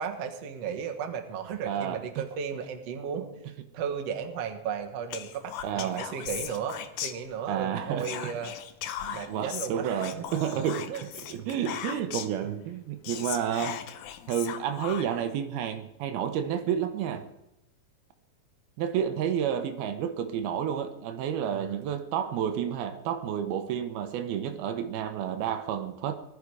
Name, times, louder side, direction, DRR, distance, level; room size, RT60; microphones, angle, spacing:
voice 1, 0.0-3.3 3.7-8.5 9.1-10.3 10.9-11.1 21.5-21.9, right 7 dB, 55° right, 2.1 m, -35 dB
voice 2, 1.6-2.2 5.6-6.1 7.5-8.1 9.0-13.8 14.3-17.3 18.8-26.1, right 9 dB, 80° right, 2.8 m, -30 dB
Whispering, 5.1-7.6 8.0-12.4 12.8-12.9 13.0-15.3, left 10 dB, 75° left, 1.9 m, -38 dB
20.0 x 13.5 x 4.8 m
omnidirectional pair, 4.4 m